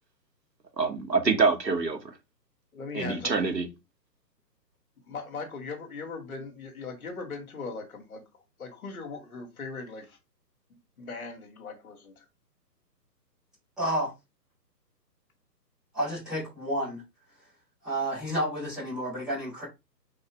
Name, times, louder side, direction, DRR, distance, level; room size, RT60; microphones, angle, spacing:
voice 1, 0.8-2.1 2.9-3.7, right 4 dB, 80° right, 2.1 m, -26 dB
voice 2, 2.7-3.6 5.1-8.3 8.6-10.2 10.7-12.3, left 4 dB, 55° left, 2.7 m, -39 dB
voice 3, 13.8-14.1 15.9-17.0 17.8-19.6, right 1 dB, ahead, 0.6 m, -30 dB
5.7 x 5.4 x 3.5 m
figure-of-eight pair, 135°, 50 cm